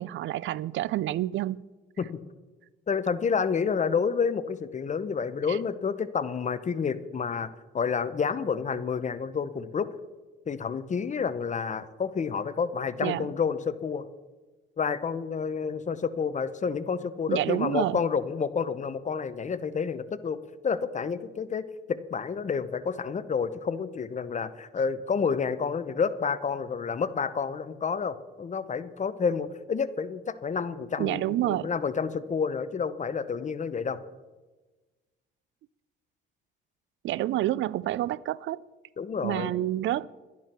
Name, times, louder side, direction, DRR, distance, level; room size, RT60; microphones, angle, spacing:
voice 1, 0.0-1.6 5.5-5.6 13.0-13.3 17.3-18.0 31.0-31.7 37.0-38.6 39.2-40.1, right 14 dB, 75° right, 0.4 m, -28 dB
voice 2, 2.9-7.5 7.7-9.9 10.5-14.0 14.8-20.4 20.6-34.0 39.0-39.5, left 6 dB, 35° left, 0.8 m, -29 dB
12.0 x 10.5 x 6.0 m
cardioid pair, 90°, 20 cm